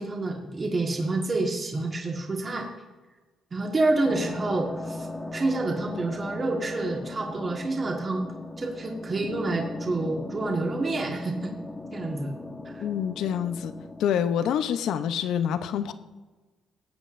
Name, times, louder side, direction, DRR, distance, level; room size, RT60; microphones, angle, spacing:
voice 1, 0.0-2.7 3.5-8.3 8.6-11.3 11.9-12.3 12.6-12.8, right 2 dB, 35° right, 0 dB, 1.5 m, -28 dB
sound 1, 4.0-14.0, left 2 dB, 10° left, 1.1 m, -38 dB
voice 2, 12.8-13.7 14.0-15.9, left 9 dB, 80° left, 11 dB, 0.6 m, -26 dB
18.5 x 8.3 x 2.6 m, 1.3 s
cardioid pair, 90°, 0 cm